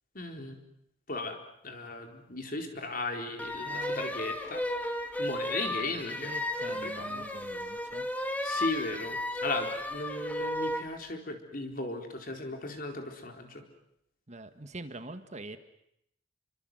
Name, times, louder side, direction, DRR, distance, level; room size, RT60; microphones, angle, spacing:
voice 1, 0.1-0.6 1.1-1.4 1.6-4.6 5.2-6.3 6.7-7.3 8.2-13.6, left 2 dB, 45° left, 4 dB, 4.3 m, -36 dB
sound 1, 3.4-10.9, left 1 dB, 10° left, 2.3 m, -34 dB
voice 2, 3.6-4.1 5.8-8.1 14.3-15.6, right 2 dB, 35° right, 9 dB, 1.7 m, -44 dB
29.0 x 24.5 x 7.9 m, 0.76 s
head